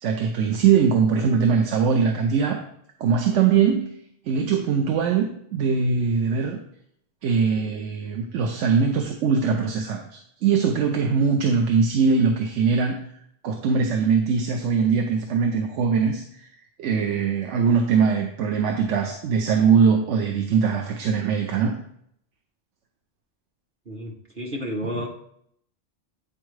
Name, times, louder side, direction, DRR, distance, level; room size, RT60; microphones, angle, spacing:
voice 1, 0.0-2.6 3.0-3.9 4.3-6.6 7.2-13.0 13.4-16.5 16.8-21.8 24.8-25.1, right 6 dB, 90° right, 4 dB, 1.0 m, -21 dB
voice 2, 23.9-25.1, equal, 50° right, -1 dB, 1.0 m, -31 dB
8.7 x 4.4 x 3.1 m, 0.70 s
omnidirectional pair, 1.2 m